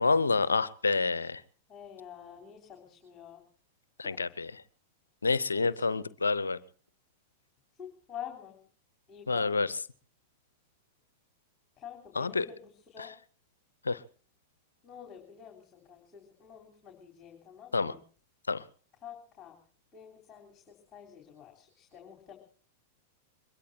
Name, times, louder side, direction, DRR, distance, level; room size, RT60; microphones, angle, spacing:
voice 1, 0.0-1.4 4.0-4.5 5.2-6.6 9.3-9.7 12.1-12.5 13.0-13.1 13.8-14.0 17.7-17.9 18.5-18.6, left 4 dB, 80° left, 19 dB, 0.7 m, -28 dB
voice 2, 1.7-3.4 4.0-4.2 5.5-5.8 7.8-8.6 9.1-9.6 11.8-13.1 14.8-18.0 19.0-19.6 19.9-22.4, left 9 dB, 25° left, 2 dB, 3.8 m, -48 dB
23.5 x 21.5 x 2.8 m, 0.43 s
figure-of-eight pair, 95°, 0 cm